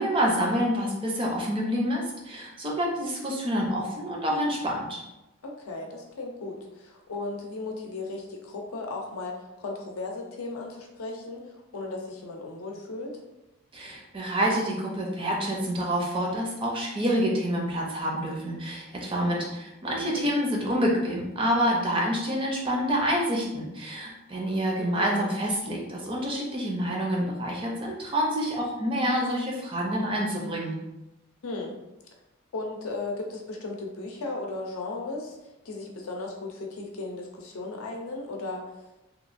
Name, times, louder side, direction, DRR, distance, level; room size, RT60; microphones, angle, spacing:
voice 1, 0.0-5.0 13.7-30.8, equal, 25° right, -2 dB, 0.4 m, -27 dB
voice 2, 5.4-13.1 19.8-20.3 24.8-25.3 31.4-31.8 32.5-35.4 35.6-38.8, left 3 dB, 85° left, 1 dB, 0.5 m, -36 dB
2.9 x 2.2 x 2.5 m, 0.97 s
head